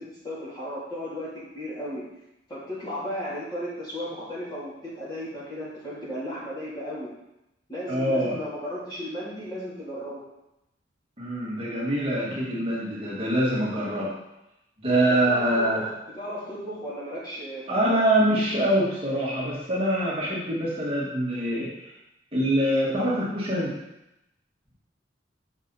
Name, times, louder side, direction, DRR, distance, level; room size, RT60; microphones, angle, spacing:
voice 1, 0.0-2.0 2.5-7.1 7.7-10.3 15.1-15.9 16.1-18.0, equal, 25° left, -8 dB, 2.9 m, -35 dB
voice 2, 7.9-8.4 11.2-14.1 14.8-15.8 17.7-21.9 22.3-23.7, right 1 dB, 30° right, -6 dB, 1.7 m, -24 dB
7.1 x 5.7 x 4.0 m, 0.90 s
head